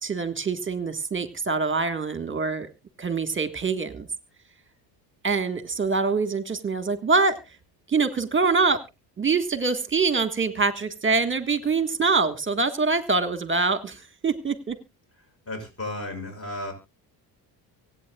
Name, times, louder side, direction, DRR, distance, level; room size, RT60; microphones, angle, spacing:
voice 1, 0.0-2.7 3.0-4.1 5.2-7.4 7.9-8.8 9.2-14.7, right 4 dB, 25° right, 11 dB, 1.6 m, -24 dB
voice 2, 15.5-16.7, left 1 dB, 25° left, 4 dB, 6.2 m, -33 dB
24.0 x 8.9 x 2.3 m, 0.25 s
hypercardioid pair, 65°, 50 cm